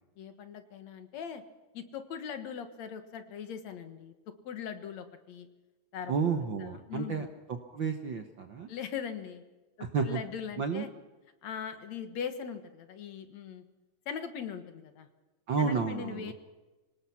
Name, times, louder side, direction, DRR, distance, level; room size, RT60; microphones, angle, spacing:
voice 1, 0.2-1.4 1.7-5.5 5.9-6.1 6.6-7.3 8.7-9.4 10.1-10.9 11.4-13.6 14.1-15.1 15.6-16.3, left 7 dB, 65° left, 8 dB, 2.6 m, -40 dB
voice 2, 6.1-8.7 9.8-10.2 10.6-10.8 15.5-16.3, right 5 dB, 55° right, 5 dB, 1.4 m, -31 dB
26.0 x 18.5 x 5.9 m, 1.1 s
omnidirectional pair, 3.5 m